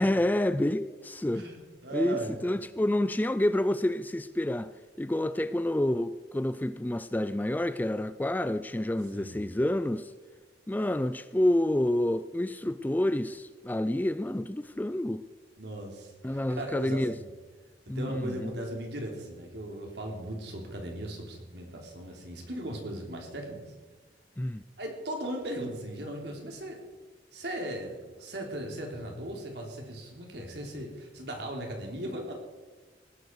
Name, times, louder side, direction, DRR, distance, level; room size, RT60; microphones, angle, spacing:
voice 1, 0.0-1.4 1.9-4.7 5.0-10.1 10.7-15.2 16.2-17.1 17.9-18.5 24.4-24.6, left 1 dB, 10° left, 13 dB, 0.4 m, -28 dB
voice 2, 1.3-2.3 9.1-9.4 15.6-17.2 18.0-23.6 24.8-26.8 27.3-32.3, right 1 dB, 65° right, 1 dB, 3.5 m, -38 dB
19.5 x 11.5 x 4.8 m, 1.3 s
head